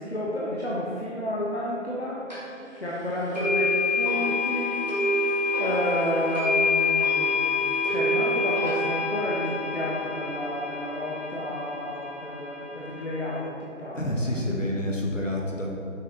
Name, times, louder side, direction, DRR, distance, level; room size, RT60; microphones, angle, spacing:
voice 1, 0.0-2.2 2.8-14.3, left 1 dB, 55° left, -6 dB, 1.0 m, -31 dB
sound 1, 2.3-2.4 3.3-13.4, left 3 dB, 30° left, 1.2 m, -27 dB
voice 2, 13.9-15.8, left 1 dB, 70° left, -2 dB, 1.3 m, -28 dB
6.2 x 6.2 x 3.0 m, 2.8 s
figure-of-eight pair, 175°, 39 cm